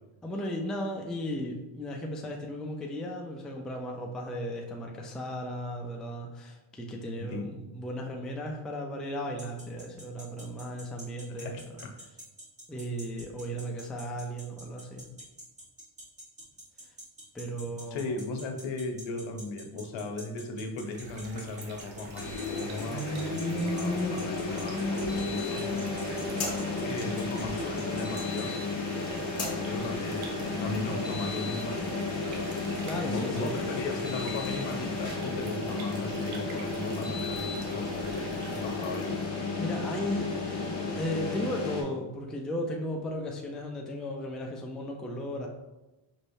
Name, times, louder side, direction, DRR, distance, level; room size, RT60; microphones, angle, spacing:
voice 1, 0.2-11.6 12.7-15.1 17.3-18.2 32.5-33.7 39.6-40.3 40.9-45.5, equal, ahead, 0 dB, 0.3 m, -36 dB
sound 1, 9.4-28.4, equal, 15° right, 1.3 m, -46 dB
voice 2, 11.4-11.9 17.9-25.6 26.8-28.6 29.6-32.1 33.0-39.2, left 2 dB, 65° left, 4 dB, 0.9 m, -37 dB
sound 2, 20.7-39.4, right 3 dB, 65° right, 1.1 m, -47 dB
sound 3, 22.2-41.8, left 3 dB, 30° left, 1.5 m, -32 dB
5.4 x 3.2 x 2.6 m, 1.0 s
cardioid pair, 110°, 49 cm